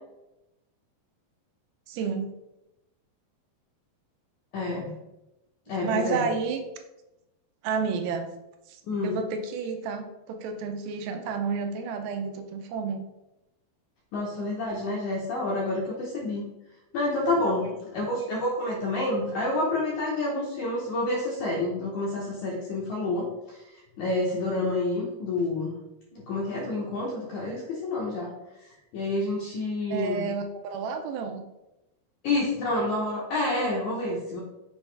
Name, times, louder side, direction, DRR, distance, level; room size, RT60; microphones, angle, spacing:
voice 1, 1.9-2.3 5.8-6.6 7.6-8.3 8.7-13.0 17.6-17.7 29.9-31.4, right 5 dB, 80° right, 6 dB, 2.4 m, -31 dB
voice 2, 4.5-4.9 5.7-6.3 8.9-9.2 14.1-16.4 16.9-23.6 24.0-25.7 26.1-28.3 28.9-30.3 32.2-34.4, left 2 dB, 70° left, -4 dB, 1.9 m, -28 dB
7.0 x 4.7 x 3.3 m, 0.94 s
omnidirectional pair, 4.6 m